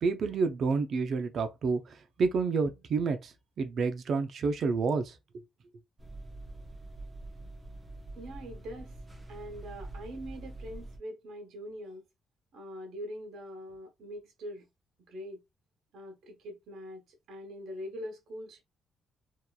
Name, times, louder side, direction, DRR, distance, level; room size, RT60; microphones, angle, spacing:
voice 1, 0.0-5.4, right 4 dB, 60° right, 0.5 m, -29 dB
sound 1, 6.0-11.0, right 2 dB, 20° right, 0.6 m, -45 dB
voice 2, 8.1-9.0 9.3-12.0 12.5-14.7 15.1-15.4 15.9-18.6, equal, 75° right, 1.0 m, -43 dB
2.8 x 2.3 x 2.2 m
cardioid pair, 90°, 0 cm